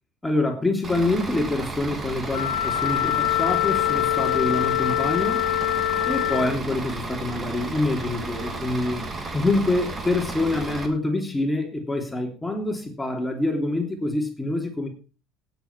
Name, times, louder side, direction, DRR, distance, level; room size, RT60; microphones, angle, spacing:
voice 1, 0.2-5.5 6.1-14.9, left 2 dB, 10° left, 4 dB, 3.1 m, -26 dB
Bus / Idling, 0.8-10.9, right 3 dB, 30° right, 2.7 m, -33 dB
Wind instrument woodwind instrument, 2.3-6.6, left 14 dB, 90° left, 1.3 m, -24 dB
17.5 x 7.9 x 4.7 m, 0.35 s
hypercardioid pair, 80°, 0 cm